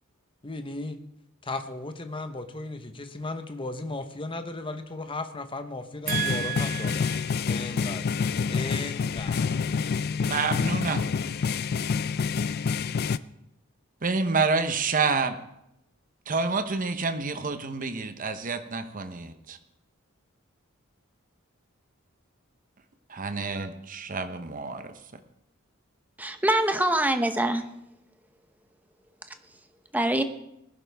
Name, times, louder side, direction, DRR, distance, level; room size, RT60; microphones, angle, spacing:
voice 1, 0.4-1.0 1.4-7.1 7.4-8.1 8.5-9.5, left 2 dB, 25° left, 0.9 m, -36 dB
sound 1, 6.1-13.2, left 5 dB, 50° left, 0.4 m, -27 dB
voice 2, 6.1-7.2 10.3-11.0 14.0-15.4 16.3-19.6 23.1-24.9, right 4 dB, 40° right, 0.9 m, -28 dB
voice 3, 26.2-27.7 29.3-29.6 29.9-30.2, right 1 dB, 10° right, 0.8 m, -25 dB
19.5 x 11.5 x 3.5 m
head